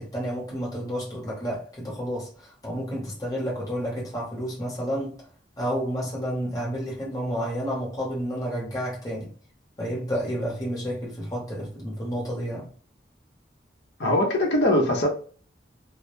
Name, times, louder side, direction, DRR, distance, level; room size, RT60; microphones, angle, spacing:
voice 1, 0.0-5.2 5.6-9.3 9.8-12.7, equal, 20° left, 0.8 m, -30 dB
voice 2, 14.0-15.1, left 1 dB, 75° left, 0.6 m, -21 dB
2.1 x 2.0 x 3.0 m
head